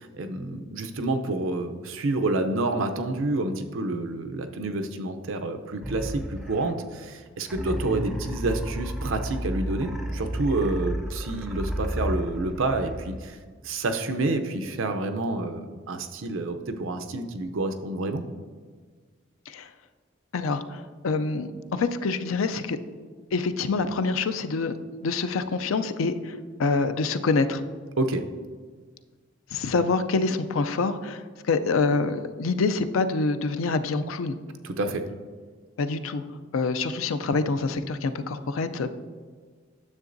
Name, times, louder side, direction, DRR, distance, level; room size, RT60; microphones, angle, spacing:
voice 1, 0.0-13.4 13.6-18.2 28.0-28.2 34.6-35.0, right 2 dB, 75° right, 7 dB, 0.6 m, -28 dB
sound 1, 5.8-7.0 7.5-13.4, equal, ahead, 0.4 m, -32 dB
voice 2, 20.3-22.8 23.3-24.7 25.0-27.6 29.5-34.4 35.8-36.2 36.5-38.9, left 4 dB, 80° left, 10 dB, 0.4 m, -26 dB
9.7 x 7.0 x 2.6 m, 1.5 s
head